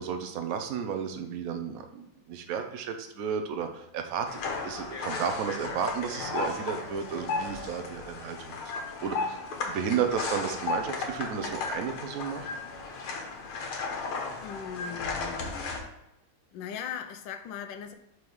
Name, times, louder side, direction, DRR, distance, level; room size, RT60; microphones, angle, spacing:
voice 1, 0.0-8.6 9.0-9.4 9.7-12.5, right 7 dB, 70° right, 6 dB, 0.8 m, -33 dB
sound 1, 4.2-15.8, left 4 dB, 90° left, 1.9 m, -35 dB
voice 2, 14.4-16.0 16.5-17.9, left 8 dB, 70° left, 7 dB, 1.2 m, -39 dB
4.8 x 4.7 x 5.3 m, 0.84 s
omnidirectional pair, 2.3 m